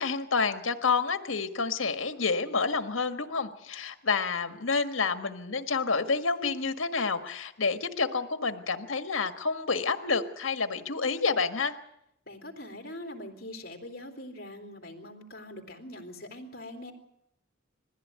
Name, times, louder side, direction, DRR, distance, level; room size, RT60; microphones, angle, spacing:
voice 1, 0.0-11.7, left 4 dB, 80° left, 9 dB, 1.6 m, -29 dB
voice 2, 12.3-16.9, left 1 dB, 50° left, 4 dB, 3.5 m, -43 dB
21.0 x 15.5 x 9.5 m, 0.79 s
head